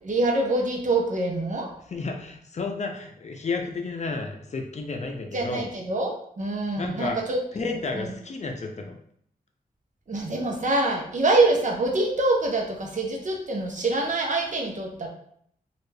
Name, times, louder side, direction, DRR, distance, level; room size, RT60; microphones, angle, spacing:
voice 1, 0.0-1.7 5.3-8.1 10.1-15.1, right 2 dB, 50° right, 1 dB, 0.8 m, -25 dB
voice 2, 1.9-5.7 6.8-7.2 7.5-9.0, left 3 dB, 45° left, 3 dB, 0.6 m, -32 dB
3.2 x 2.5 x 3.3 m, 0.66 s
wide cardioid pair, 85°, 16 cm